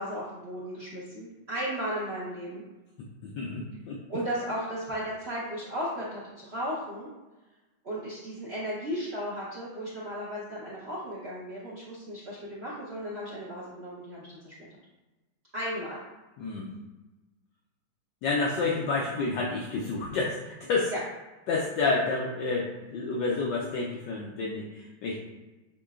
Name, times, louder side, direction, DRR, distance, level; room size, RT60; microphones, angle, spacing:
voice 1, 0.0-2.6 4.1-7.1 7.8-14.5 15.5-16.0 20.9-21.0, equal, 55° right, -8 dB, 0.7 m, -35 dB
voice 2, 3.2-4.0 16.4-16.7 18.2-20.9 21.5-25.2, left 3 dB, 75° left, -2 dB, 1.1 m, -29 dB
6.6 x 3.1 x 2.4 m, 1.1 s
omnidirectional pair, 2.2 m